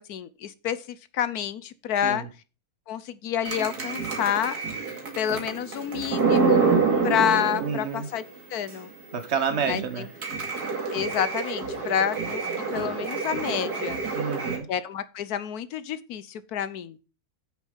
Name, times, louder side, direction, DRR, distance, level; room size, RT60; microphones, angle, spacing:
voice 1, 0.1-2.2 2.9-4.6 5.2-6.6 7.0-8.2 8.5-8.9 9.6-10.1 10.9-12.4 12.7-14.0 14.7-17.0, left 9 dB, 80° left, 15 dB, 1.3 m, -28 dB
sound 1, 3.4-8.2 8.7-8.8 9.1-9.2 9.5-14.6, right 4 dB, 85° right, 2.8 m, -27 dB
voice 2, 7.6-8.1 9.1-10.1 14.1-14.7, right 6 dB, 50° right, 10 dB, 1.4 m, -29 dB
8.4 x 6.7 x 5.3 m, 0.33 s
omnidirectional pair, 1.6 m